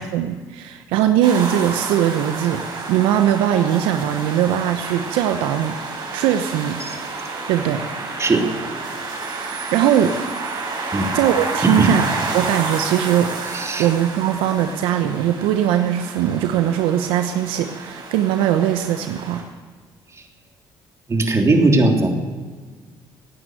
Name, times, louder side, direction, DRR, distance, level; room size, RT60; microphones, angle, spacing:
voice 1, 0.0-2.6 2.9-6.8 7.5-7.8 9.7-10.2 11.1-12.1 12.3-13.3 13.8-19.4, right 10 dB, 80° right, 7 dB, 0.9 m, -20 dB
sound 1, 1.2-19.4, right 3 dB, 55° right, 5.2 m, -30 dB
voice 2, 13.5-13.9 21.1-22.1, right 2 dB, 30° right, 2 dB, 3.2 m, -18 dB
17.0 x 9.5 x 8.0 m, 1.5 s
supercardioid pair, 65°, 9 cm